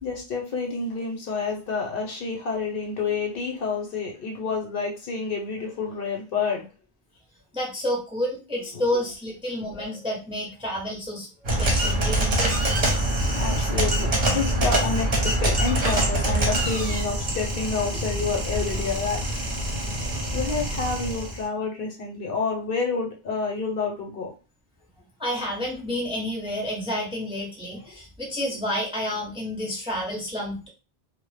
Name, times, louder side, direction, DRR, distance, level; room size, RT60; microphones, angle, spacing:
voice 1, 0.0-6.7 13.4-19.2 20.3-24.3 27.7-27.8, left 4 dB, 65° left, 1 dB, 0.8 m, -29 dB
voice 2, 7.5-11.3 11.6-12.5 25.2-30.7, left 1 dB, 5° right, -2 dB, 0.5 m, -29 dB
sound 1, 11.4-21.4, right 1 dB, 40° right, 0.7 m, -24 dB
2.0 x 2.0 x 3.1 m, 0.33 s
omnidirectional pair, 1.1 m